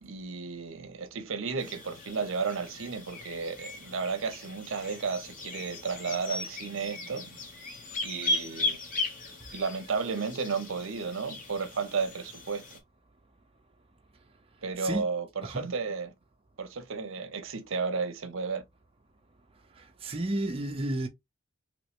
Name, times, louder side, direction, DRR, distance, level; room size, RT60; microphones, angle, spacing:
voice 1, 0.0-7.4 8.0-8.8 9.5-12.6 14.6-16.1 16.6-18.6, right 5 dB, 70° right, 0.7 m, -33 dB
sound 1, 1.6-12.8, left 2 dB, 40° left, 1.2 m, -37 dB
voice 2, 19.8-21.1, right 1 dB, 30° right, 0.6 m, -32 dB
3.1 x 3.1 x 2.9 m
head